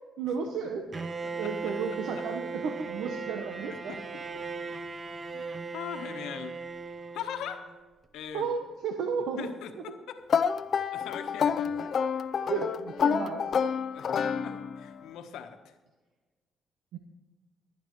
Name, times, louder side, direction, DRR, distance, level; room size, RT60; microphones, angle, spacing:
voice 1, 0.2-0.8 1.4-4.0 8.3-9.5 12.5-13.5 16.9-17.0, right 6 dB, 80° right, 4 dB, 1.0 m, -33 dB
Bowed string instrument, 0.9-7.9, right 4 dB, 35° right, 0.8 m, -38 dB
voice 2, 1.2-1.7 2.2-2.3 3.7-4.2 5.3-5.4 5.7-6.6 7.1-7.6 8.1-8.6 9.4-10.2 10.9-11.9 13.9-15.7, left 8 dB, 85° left, 6 dB, 1.3 m, -41 dB
sound 1, 10.3-14.9, left 7 dB, 55° left, 0.6 m, -28 dB
22.0 x 9.5 x 3.2 m, 1.3 s
cardioid pair, 90°, 0 cm